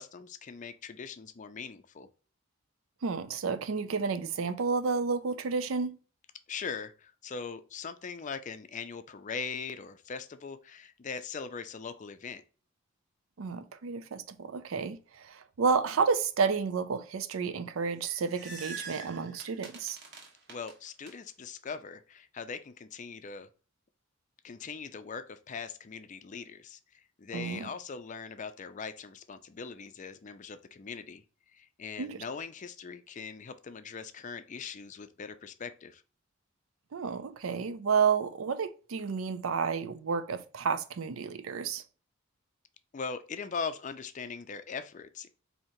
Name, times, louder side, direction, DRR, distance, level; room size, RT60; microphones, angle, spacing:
voice 1, 0.0-2.1 6.5-12.4 20.5-23.5 24.4-36.0 42.9-45.3, left 5 dB, 40° left, 0.4 m, -41 dB
voice 2, 3.0-6.0 13.4-20.0 27.3-27.7 32.0-32.2 36.9-41.8, right 5 dB, 85° right, 0.5 m, -31 dB
sound 1, 17.8-21.1, right 4 dB, 55° right, 1.0 m, -45 dB
4.4 x 2.8 x 2.6 m
head